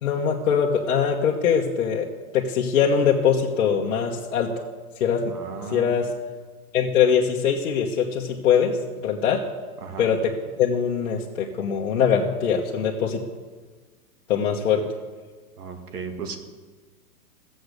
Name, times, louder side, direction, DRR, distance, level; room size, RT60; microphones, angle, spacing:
voice 1, 0.0-2.1 2.3-4.5 5.0-5.2 5.7-6.1 6.7-9.4 10.0-13.2 14.3-14.8, left 7 dB, 55° left, -2 dB, 1.4 m, -22 dB
voice 2, 5.3-6.0 9.8-10.1 15.6-16.4, right 5 dB, 90° right, 5 dB, 2.2 m, -35 dB
15.0 x 7.9 x 6.7 m, 1.4 s
hypercardioid pair, 170°, 44 cm